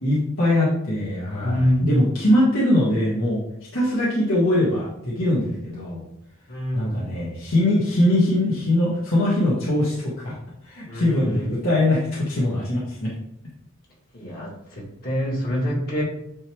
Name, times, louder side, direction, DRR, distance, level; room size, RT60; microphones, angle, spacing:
voice 1, 0.0-3.4 3.7-6.0 6.7-9.9 10.2-10.4 10.7-13.1, left 1 dB, 65° left, -8 dB, 1.8 m, -22 dB
voice 2, 1.4-1.9 6.5-6.9 10.9-11.5 14.1-16.0, equal, 45° left, -4 dB, 1.9 m, -26 dB
9.4 x 3.2 x 3.6 m, 0.77 s
head